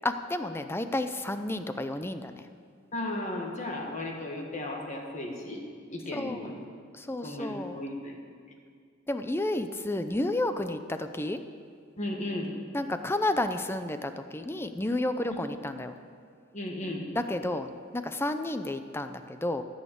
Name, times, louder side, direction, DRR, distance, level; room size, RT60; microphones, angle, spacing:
voice 1, 0.0-2.4 6.1-6.6 6.9-7.8 9.1-11.4 12.7-15.9 17.1-19.6, left 1 dB, 10° left, 9 dB, 0.6 m, -31 dB
voice 2, 2.9-5.6 5.9-6.6 7.2-8.2 12.0-12.5 15.3-15.4 16.5-17.0, left 1 dB, 40° left, 0 dB, 1.8 m, -35 dB
14.0 x 6.4 x 8.4 m, 2.1 s
head